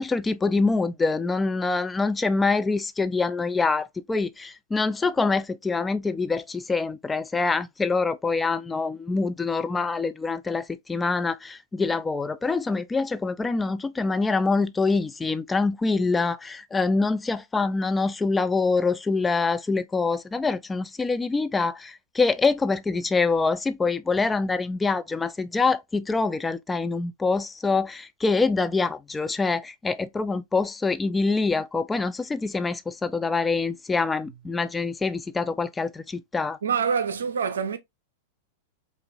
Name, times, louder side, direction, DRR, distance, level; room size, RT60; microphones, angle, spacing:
voice 1, 0.0-36.6, left 4 dB, 10° left, 0.4 m, -25 dB
voice 2, 36.6-37.8, right 6 dB, 75° right, 0.6 m, -25 dB
5.2 x 2.5 x 2.6 m
figure-of-eight pair, 95°, 0 cm